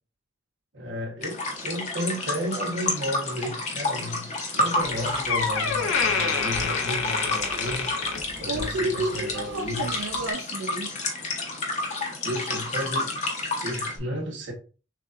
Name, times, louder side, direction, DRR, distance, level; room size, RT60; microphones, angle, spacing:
voice 1, 0.7-7.9 8.4-9.8 12.2-13.1 13.6-14.5, equal, 65° right, 1.2 m, -33 dB
sound 1, 1.2-14.0, left 2 dB, 35° left, 0.9 m, -30 dB
Door, 4.8-4.9 5.3-8.8 9.1-9.4 10.1-10.2, left 5 dB, 80° left, 0.9 m, -27 dB
voice 2, 8.4-11.0, right 2 dB, 80° right, 0.5 m, -31 dB
6.4 x 2.6 x 2.5 m
head